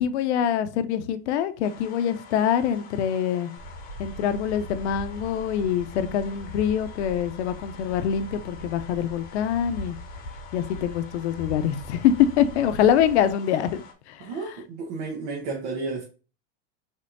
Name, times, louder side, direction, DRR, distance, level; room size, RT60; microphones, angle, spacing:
voice 1, 0.0-3.5 4.0-10.0 10.5-14.3, left 9 dB, 80° left, 0.7 m, -24 dB
sound 1, 1.6-13.9, left 6 dB, 25° left, 0.9 m, -47 dB
sound 2, 3.6-13.3, equal, 5° right, 2.0 m, -41 dB
voice 2, 14.2-16.0, right 3 dB, 65° right, 1.3 m, -32 dB
5.1 x 3.6 x 2.6 m
supercardioid pair, 145°, 34 cm